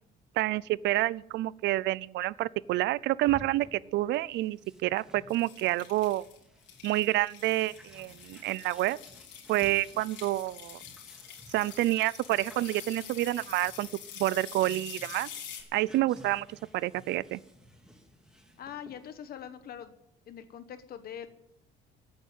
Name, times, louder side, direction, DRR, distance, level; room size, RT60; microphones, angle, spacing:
voice 1, 0.4-6.3 6.8-9.0 9.5-10.8 11.5-13.9 14.2-15.3 15.7-16.5 16.7-17.4, right 16 dB, 65° right, 22 dB, 0.5 m, -28 dB
sound 1, 3.2-19.1, left 1 dB, 5° right, 2.3 m, -55 dB
sound 2, 5.3-15.6, left 8 dB, 70° left, 4.0 m, -47 dB
voice 2, 18.6-19.9 20.3-21.3, left 9 dB, 50° left, 11 dB, 1.1 m, -43 dB
15.0 x 9.0 x 9.1 m, 0.80 s
cardioid pair, 145°, 20 cm